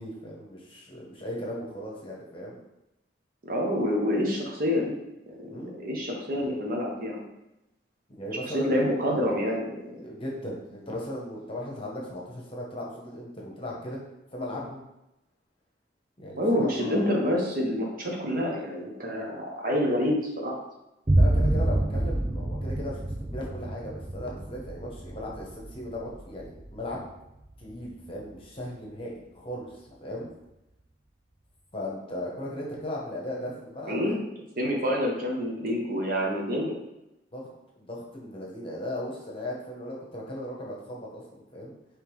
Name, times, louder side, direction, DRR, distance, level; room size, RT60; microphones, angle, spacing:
voice 1, 0.0-2.6 5.5-5.7 8.1-9.3 10.0-14.0 14.3-14.8 16.2-17.1 21.2-27.1 27.6-29.7 30.0-30.3 31.7-34.2 37.3-37.5 37.8-41.7, left 1 dB, 30° left, -3 dB, 1.0 m, -37 dB
voice 2, 3.4-4.9 5.3-5.5 5.8-7.2 8.5-10.0 16.4-20.6 33.9-34.2 34.6-36.8, equal, 50° right, -1 dB, 0.9 m, -27 dB
sound 1, 21.1-28.5, right 1 dB, 15° right, 0.3 m, -28 dB
3.6 x 3.2 x 4.6 m, 0.91 s
head